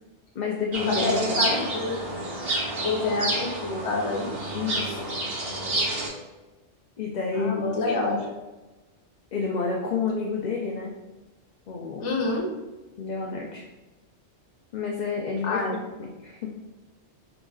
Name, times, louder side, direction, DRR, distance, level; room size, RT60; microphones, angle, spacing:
voice 1, 0.3-1.7 4.5-5.1 7.0-7.7 8.1-8.4 9.3-10.9 11.7-12.1 13.0-13.7 14.7-15.6 16.0-16.5, left 5 dB, 55° left, -1 dB, 0.5 m, -30 dB
sound 1, 0.7-6.1, right 2 dB, 60° right, 1.2 m, -29 dB
voice 2, 0.9-1.9 2.8-4.3 7.3-8.2 12.0-12.5 15.4-15.8, left 3 dB, 85° left, 0 dB, 1.2 m, -27 dB
4.8 x 3.9 x 2.3 m, 1.1 s
omnidirectional pair, 1.2 m